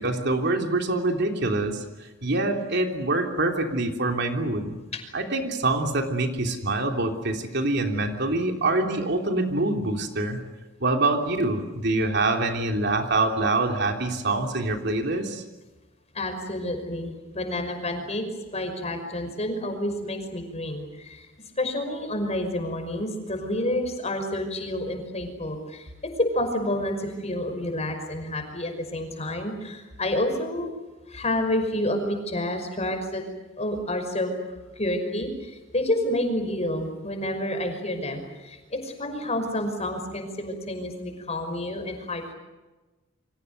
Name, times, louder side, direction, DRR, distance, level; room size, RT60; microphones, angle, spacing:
voice 1, 0.0-1.8 2.2-4.8 5.1-10.4 10.8-15.4, right 2 dB, 60° right, 3 dB, 3.3 m, -25 dB
voice 2, 16.1-18.3 18.5-21.3 21.6-25.9 26.2-30.7 31.1-33.2 33.6-42.3, left 1 dB, 35° left, 6 dB, 5.6 m, -29 dB
29.0 x 25.0 x 6.8 m, 1.1 s
head